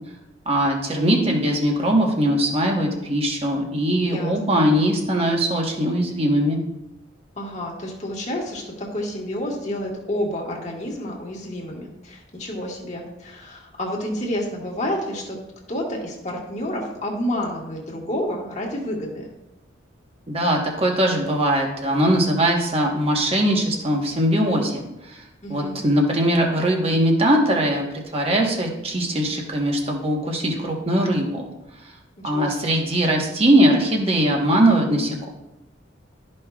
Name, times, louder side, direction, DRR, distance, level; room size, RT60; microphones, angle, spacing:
voice 1, 0.5-6.6 20.3-25.2 25.5-31.5 32.2-35.3, right 1 dB, 30° right, 0 dB, 1.2 m, -21 dB
voice 2, 4.0-4.6 7.4-15.4 15.7-19.3 25.4-25.8 32.2-32.7, left 1 dB, 35° left, -2 dB, 1.5 m, -29 dB
12.5 x 5.4 x 2.4 m, 0.92 s
head